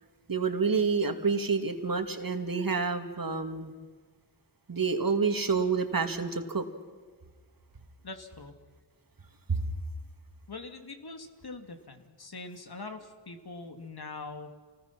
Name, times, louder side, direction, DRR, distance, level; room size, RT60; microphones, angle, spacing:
voice 1, 0.3-3.7 4.7-6.7 9.5-9.6, right 5 dB, 50° right, 6 dB, 2.3 m, -28 dB
voice 2, 8.0-8.5 10.5-14.6, left 3 dB, 55° left, 6 dB, 2.6 m, -43 dB
28.5 x 20.0 x 6.0 m, 1.5 s
cardioid pair, 50°, 45 cm